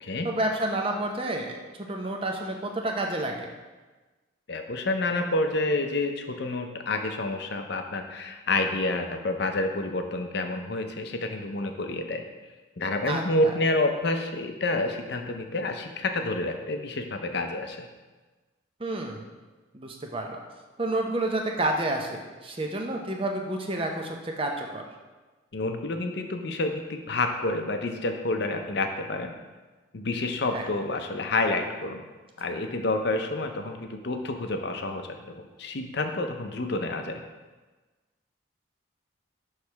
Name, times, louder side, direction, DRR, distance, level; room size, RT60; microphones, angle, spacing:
voice 1, 0.2-3.5 13.1-13.2 18.8-19.3 19.7-20.4 20.8-24.8 30.5-30.7, right 1 dB, 25° right, 2 dB, 0.6 m, -30 dB
voice 2, 4.5-12.2 12.8-17.9 25.5-29.3 29.9-32.0 32.4-37.2, left 2 dB, 55° left, 5 dB, 0.6 m, -29 dB
6.3 x 3.2 x 5.7 m, 1.3 s
head